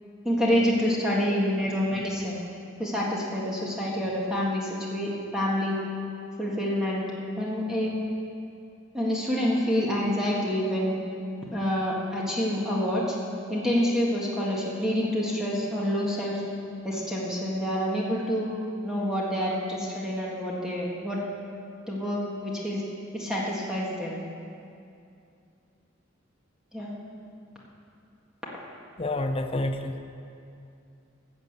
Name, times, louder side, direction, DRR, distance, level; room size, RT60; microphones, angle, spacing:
voice 1, 0.3-2.4 2.8-5.8 6.4-7.1 7.4-7.9 8.9-11.0 11.5-13.2 13.5-16.4 16.8-18.5 18.8-21.2 21.9-22.8 23.1-24.2 26.7-26.9, equal, 5° right, -5 dB, 1.7 m, -27 dB
voice 2, 29.0-30.0, left 2 dB, 30° left, 6 dB, 0.6 m, -28 dB
14.0 x 7.0 x 8.0 m, 2.5 s
head